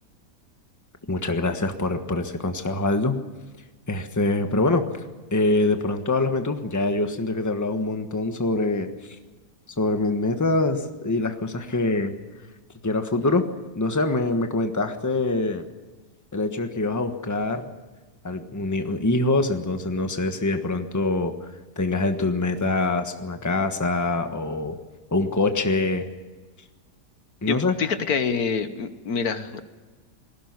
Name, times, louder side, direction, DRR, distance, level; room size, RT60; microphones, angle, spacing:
voice 1, 1.1-3.2 3.9-5.0 5.3-8.9 9.8-12.1 12.8-13.5 13.7-15.6 16.3-17.7 18.2-21.3 21.8-24.8 25.1-26.0 27.4-27.7, left 2 dB, 10° left, 6 dB, 1.3 m, -24 dB
voice 2, 27.4-29.6, left 6 dB, 65° left, 10 dB, 1.6 m, -26 dB
20.0 x 16.5 x 9.7 m, 1.2 s
omnidirectional pair, 1.8 m